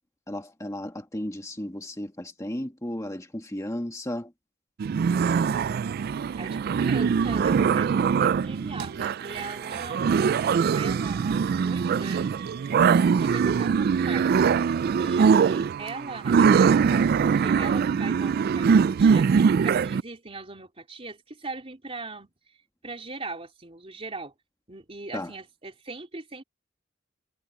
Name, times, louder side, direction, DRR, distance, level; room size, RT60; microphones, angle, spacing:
voice 1, 0.3-4.3 25.1-25.3, left 1 dB, 15° left, 1.6 m, -34 dB
sound 1, 4.8-20.0, right 6 dB, 50° right, 0.3 m, -22 dB
voice 2, 6.4-18.7 19.0-22.3 22.8-24.3 24.7-26.4, right 3 dB, 30° right, 3.3 m, -40 dB
head